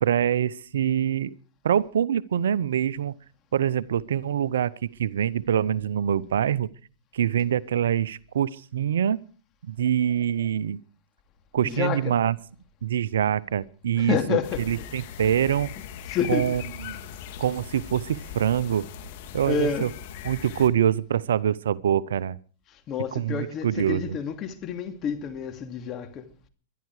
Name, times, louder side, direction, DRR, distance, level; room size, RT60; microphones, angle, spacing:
voice 1, 0.0-1.4 1.6-3.1 3.5-4.7 5.0-6.7 7.1-9.2 9.7-10.8 11.5-12.4 12.8-14.4 14.7-15.7 16.3-17.0 17.4-18.9 19.3-19.9 20.2-22.4 23.1-24.2, right 9 dB, 75° right, 0.6 m, -25 dB
voice 2, 11.6-12.1 14.0-14.8 15.2-15.3 16.1-16.6 19.4-19.9 22.7-26.3, left 7 dB, 35° left, 2.6 m, -29 dB
sound 1, 14.4-20.7, left 8 dB, 55° left, 2.2 m, -40 dB
22.0 x 12.0 x 4.8 m
hypercardioid pair, 115°, 0 cm